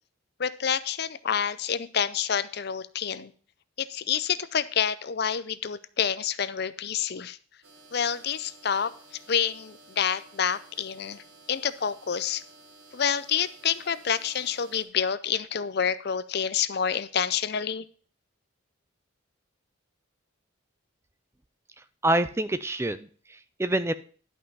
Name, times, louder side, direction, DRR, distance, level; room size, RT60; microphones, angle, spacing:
voice 1, 0.4-3.3 3.8-7.4 7.9-8.9 9.3-11.2 11.5-12.4 12.9-17.8, left 7 dB, 50° left, 15 dB, 0.5 m, -28 dB
sound 1, 7.6-14.8, right 3 dB, 80° right, 3.2 m, -53 dB
voice 2, 21.8-23.9, right 1 dB, 10° right, 13 dB, 0.4 m, -27 dB
11.0 x 5.6 x 5.4 m, 0.42 s
head